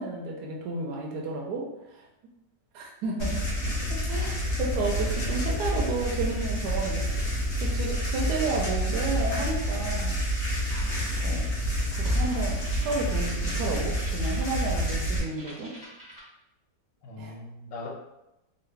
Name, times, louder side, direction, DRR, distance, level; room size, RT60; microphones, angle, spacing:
voice 1, 0.0-1.6 1.9-2.0 2.7-3.5 3.9-7.1 7.6-10.1 11.2-11.5 11.9-15.7 17.2-17.4, right 3 dB, 75° right, -2 dB, 1.2 m, -32 dB
sound 1, 3.2-15.2, equal, 45° left, 1.2 m, -28 dB
voice 2, 4.9-5.3 5.8-5.9 12.0-12.1 17.0-17.9, left 2 dB, 85° left, -1 dB, 1.5 m, -40 dB
sound 2, 10.4-16.2, left 3 dB, 20° right, 0.6 m, -38 dB
3.9 x 2.3 x 3.2 m, 0.90 s
omnidirectional pair, 1.9 m